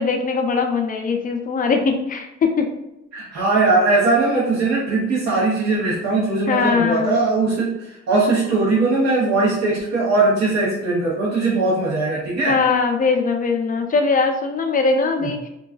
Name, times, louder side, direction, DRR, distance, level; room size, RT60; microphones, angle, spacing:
voice 1, 0.0-2.7 6.5-7.1 12.5-15.4, left 4 dB, 30° left, 4 dB, 0.4 m, -20 dB
voice 2, 3.1-12.6 15.2-15.3, right 3 dB, 65° right, -8 dB, 0.8 m, -20 dB
2.3 x 2.3 x 2.4 m, 0.90 s
cardioid pair, 90°, 30 cm